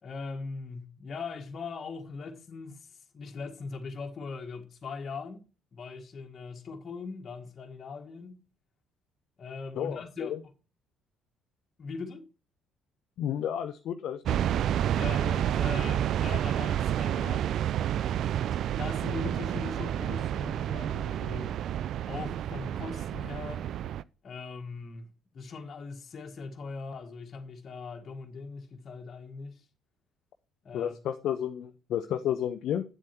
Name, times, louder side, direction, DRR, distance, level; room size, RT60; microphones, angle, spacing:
voice 1, 0.0-2.9 3.1-5.4 5.7-8.4 9.4-10.4 11.8-12.3 14.9-17.5 18.7-21.6 22.1-23.7 24.2-25.1 25.3-29.6 30.6-30.9, left 4 dB, 45° left, 1.6 m, -40 dB
voice 2, 9.7-10.4 13.2-14.2 30.7-32.8, left 10 dB, 65° left, 0.7 m, -31 dB
sound 1, 14.3-24.0, right 10 dB, 60° right, 0.4 m, -29 dB
9.2 x 7.6 x 4.3 m
hypercardioid pair, 55°, 0 cm